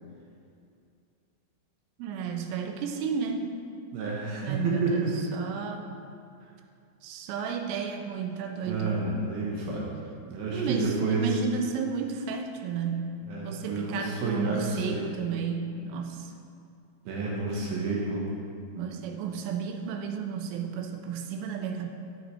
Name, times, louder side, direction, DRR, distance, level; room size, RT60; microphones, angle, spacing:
voice 1, 2.0-3.5 4.4-5.9 7.0-9.0 10.5-13.1 13.4-16.3 18.7-21.9, right 6 dB, 90° right, 4 dB, 3.2 m, -33 dB
voice 2, 3.9-5.1 8.6-9.9 10.3-11.3 13.3-15.0 17.1-18.2, right 3 dB, 70° right, -3 dB, 2.4 m, -29 dB
14.5 x 6.0 x 3.1 m, 2.4 s
omnidirectional pair, 5.4 m